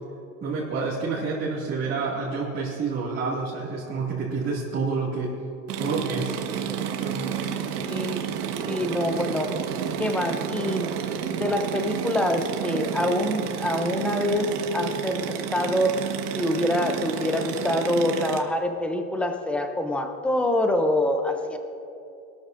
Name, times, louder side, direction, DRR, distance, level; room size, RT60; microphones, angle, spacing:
voice 1, 0.4-5.3 5.8-6.4 7.0-7.4, right 4 dB, 25° right, -7 dB, 2.3 m, -28 dB
sound 1, 5.7-18.4, right 8 dB, 70° right, 1.5 m, -30 dB
voice 2, 7.8-8.4 8.6-9.6 10.0-10.9 11.3-16.0 16.3-21.6, left 1 dB, 5° left, 5 dB, 0.6 m, -26 dB
21.5 x 13.0 x 2.6 m, 2.7 s
supercardioid pair, 145°, 46 cm